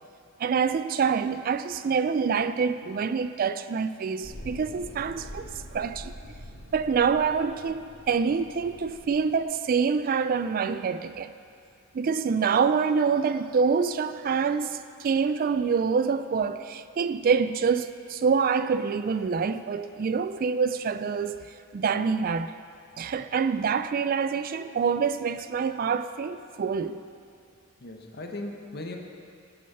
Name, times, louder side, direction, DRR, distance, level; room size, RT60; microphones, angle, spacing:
voice 1, 0.4-6.1 6.7-11.3 11.9-21.4 21.7-22.6 23.0-27.0, right 5 dB, 40° right, 0.3 m, -26 dB
sound 1, 4.2-9.4, left 1 dB, 90° left, 2.5 m, -44 dB
voice 2, 27.8-29.0, left 2 dB, 50° left, 1.2 m, -38 dB
17.0 x 6.5 x 5.5 m
head